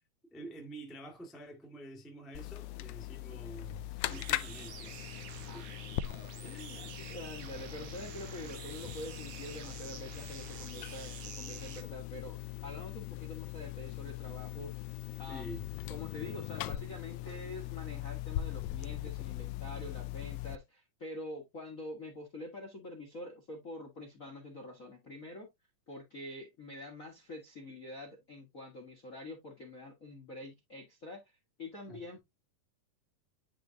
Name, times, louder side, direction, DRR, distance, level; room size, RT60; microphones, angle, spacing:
voice 1, 0.3-5.0 5.5-5.6 6.4-7.2 15.3-15.7 31.9-32.2, right 1 dB, ahead, 0.7 m, -48 dB
sound 1, 2.3-20.6, left 15 dB, 85° left, 1.6 m, -41 dB
sound 2, 4.1-11.8, right 8 dB, 75° right, 2.8 m, -48 dB
voice 2, 5.5-6.0 6.4-14.9 15.2-15.6 15.9-25.5 25.9-32.2, left 2 dB, 50° left, 1.0 m, -46 dB
10.0 x 3.8 x 2.7 m
omnidirectional pair, 3.7 m